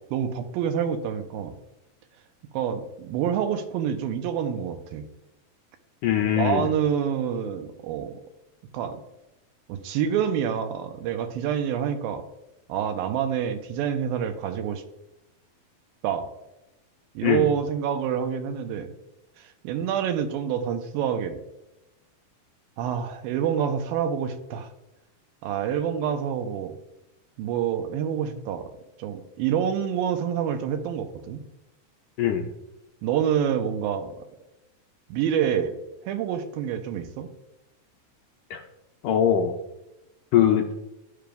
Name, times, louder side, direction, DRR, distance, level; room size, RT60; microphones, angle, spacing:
voice 1, 0.1-1.5 2.5-5.0 6.4-8.2 8.7-9.0 9.7-12.2 12.7-14.8 16.0-16.3 17.2-18.9 19.4-21.4 22.8-24.7 25.4-26.8 27.4-28.7 29.0-31.4 33.0-34.2 35.1-35.7 36.0-37.3, right 8 dB, 85° right, 8 dB, 2.4 m, -27 dB
voice 2, 6.0-6.7 17.2-17.5 32.2-32.5 38.5-38.6 39.0-39.5 40.3-40.7, left 10 dB, 80° left, 2 dB, 1.9 m, -21 dB
12.5 x 5.1 x 2.3 m, 0.93 s
omnidirectional pair, 4.2 m